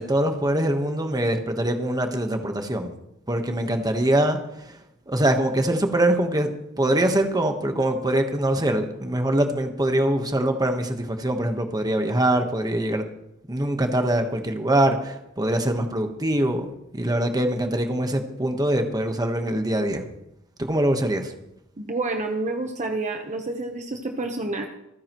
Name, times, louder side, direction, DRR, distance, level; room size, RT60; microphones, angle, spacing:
voice 1, 0.0-2.9 3.3-4.8 5.1-6.5 6.8-13.0 13.5-16.7 16.9-20.0 20.6-21.3, right 1 dB, 20° right, 5 dB, 1.2 m, -23 dB
voice 2, 21.8-24.7, right 2 dB, 35° right, 4 dB, 1.0 m, -29 dB
26.0 x 9.7 x 3.1 m, 0.83 s
head